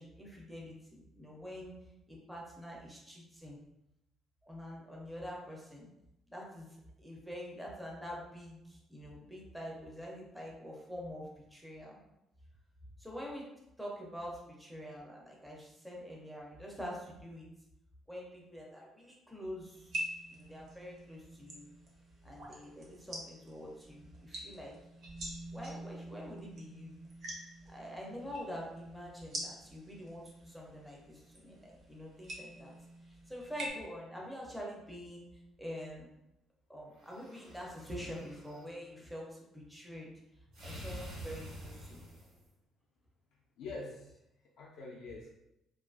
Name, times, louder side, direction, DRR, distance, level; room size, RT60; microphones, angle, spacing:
voice 1, 0.0-1.7 2.1-3.6 4.4-5.9 6.3-12.0 13.0-13.5 13.8-17.5 18.1-19.9 20.3-21.7 22.2-24.7 25.5-26.9 27.6-32.7 33.1-35.2 35.6-36.1 36.7-40.1 40.6-42.1, equal, ahead, -3 dB, 0.4 m, -46 dB
sound 1, 19.7-33.7, right 1 dB, 50° right, 0.6 m, -46 dB
sound 2, 36.9-38.7 40.5-42.5, right 1 dB, 70° right, 1.2 m, -48 dB
voice 2, 43.3-45.3, left 3 dB, 65° left, -3 dB, 0.3 m, -46 dB
2.5 x 2.3 x 2.4 m, 0.86 s
cardioid pair, 165°, 0 cm